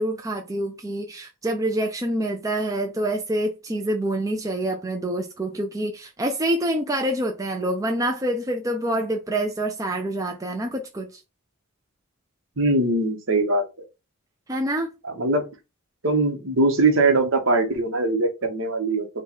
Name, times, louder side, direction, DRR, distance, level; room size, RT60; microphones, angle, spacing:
voice 1, 0.0-11.2 14.5-14.9, right 1 dB, 15° right, 0.4 m, -26 dB
voice 2, 12.6-13.9 15.1-15.4 16.0-19.1, right 2 dB, 60° right, 1.1 m, -21 dB
4.4 x 2.3 x 4.1 m
head